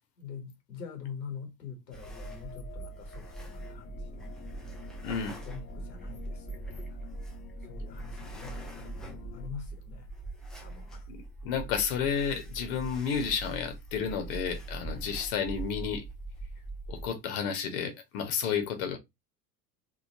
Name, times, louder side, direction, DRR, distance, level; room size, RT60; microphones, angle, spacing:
voice 1, 0.2-4.3 5.4-7.0 7.6-10.1 10.6-11.1 14.8-15.2, left 6 dB, 85° left, 0.9 m, -45 dB
sound 1, 1.9-17.1, right 2 dB, ahead, 0.3 m, -42 dB
sound 2, 2.0-9.5, left 6 dB, 20° left, 0.7 m, -50 dB
voice 2, 5.0-5.4 11.1-16.0 16.9-19.0, left 7 dB, 55° left, 0.9 m, -31 dB
3.1 x 2.1 x 2.7 m
figure-of-eight pair, 75°, 49 cm